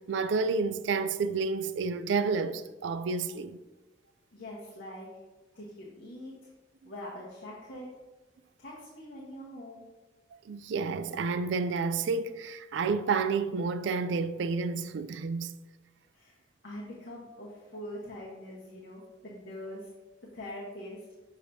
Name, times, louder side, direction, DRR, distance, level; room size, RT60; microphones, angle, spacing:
voice 1, 0.0-3.6 6.8-6.9 10.5-15.5, right 4 dB, 80° right, 0.4 m, -30 dB
voice 2, 4.3-5.1 5.5-6.5 6.8-7.9 8.6-9.9 16.1-16.4 16.6-19.9 20.3-21.0, left 1 dB, 80° left, 1.2 m, -43 dB
7.5 x 5.0 x 2.7 m
head